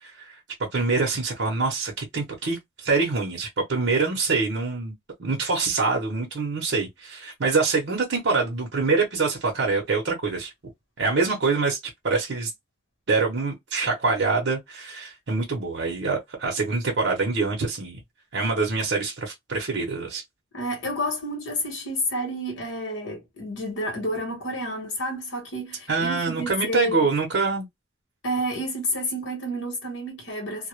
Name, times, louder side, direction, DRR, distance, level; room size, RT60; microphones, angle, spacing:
voice 1, 0.0-4.9 5.2-10.5 11.0-11.8 12.0-12.5 13.1-18.0 18.3-20.2 25.9-27.7, right 4 dB, 65° right, 0.7 m, -25 dB
voice 2, 20.5-27.1 28.2-30.7, equal, 75° left, 1.0 m, -30 dB
2.1 x 2.0 x 2.8 m
head